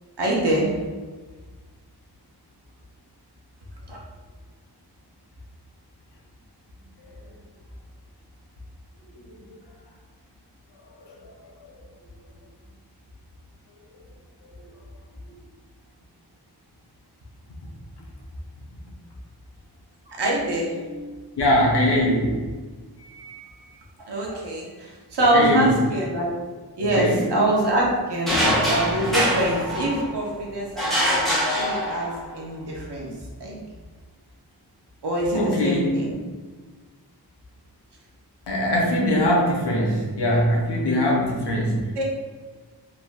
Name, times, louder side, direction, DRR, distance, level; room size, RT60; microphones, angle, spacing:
voice 1, 0.2-0.7 3.9-4.0 20.1-21.2 24.1-26.3 26.8-28.4 28.7-33.1 33.4-33.6 35.0-36.2 41.9-42.0, right 1 dB, 80° right, -3 dB, 0.8 m, -25 dB
voice 2, 21.4-22.4 23.0-23.6 25.3-25.7 26.8-27.3 35.3-36.0 38.5-41.8, left 1 dB, 85° left, -2 dB, 0.7 m, -22 dB
sound 1, 28.3-30.2 30.8-32.3, equal, ahead, 0.9 m, -23 dB
3.3 x 2.5 x 2.2 m, 1.3 s
wide cardioid pair, 75°, 40 cm